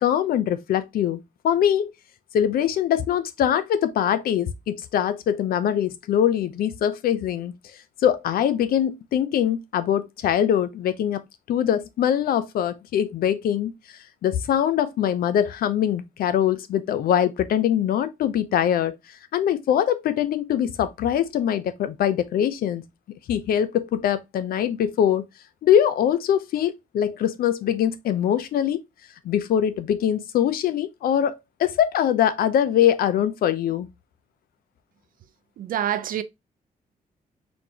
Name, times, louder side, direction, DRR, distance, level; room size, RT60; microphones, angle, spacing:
voice 1, 0.0-1.9 2.3-7.5 8.0-11.2 11.5-13.7 14.2-19.0 19.3-22.8 23.3-25.2 25.6-28.8 29.2-33.9, left 10 dB, 90° left, 0.6 m, -23 dB
voice 2, 35.6-36.2, right 11 dB, 70° right, 0.5 m, -26 dB
4.2 x 3.3 x 2.8 m
wide cardioid pair, 155°, 15 cm